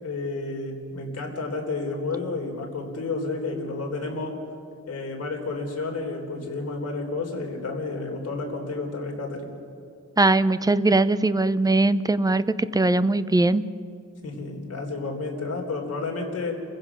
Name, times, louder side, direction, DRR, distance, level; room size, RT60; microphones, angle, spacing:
voice 1, 0.0-4.4 4.9-9.5 14.2-16.5, left 3 dB, 55° left, 0 dB, 3.6 m, -31 dB
voice 2, 10.2-13.6, right 2 dB, 15° right, 14 dB, 0.4 m, -20 dB
29.5 x 15.5 x 6.1 m, 2.3 s
wide cardioid pair, 175°, 30 cm